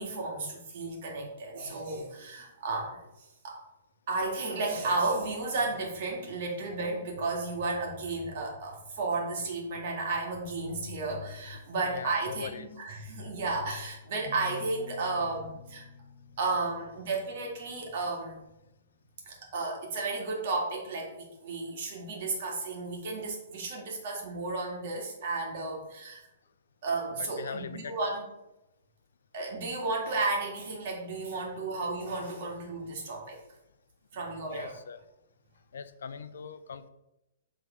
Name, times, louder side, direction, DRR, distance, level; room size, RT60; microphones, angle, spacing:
voice 1, 0.0-3.0 3.4-3.6 4.1-15.8 16.4-18.4 19.3-26.2 26.8-28.2 29.3-33.4 34.1-34.7, right 3 dB, 50° right, 0 dB, 1.9 m, -33 dB
voice 2, 11.9-12.7 27.2-28.2 34.1-35.0 35.7-36.9, left 6 dB, 85° left, 12 dB, 0.5 m, -41 dB
sound 1, 14.2-17.9, left 4 dB, 45° left, 1.9 m, -49 dB
7.7 x 3.7 x 4.3 m, 0.91 s
hypercardioid pair, 160°, 0 cm